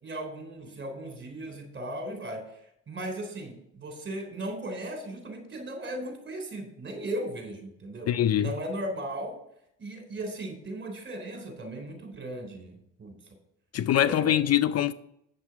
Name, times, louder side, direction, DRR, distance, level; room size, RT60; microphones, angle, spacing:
voice 1, 0.0-2.4 2.9-8.1 8.4-9.4 9.8-13.1 14.0-14.4, right 1 dB, 40° right, 3.7 m, -37 dB
voice 2, 8.1-8.5 13.7-14.9, left 11 dB, 55° left, 0.6 m, -23 dB
8.7 x 7.0 x 5.9 m
cardioid pair, 90°, 30 cm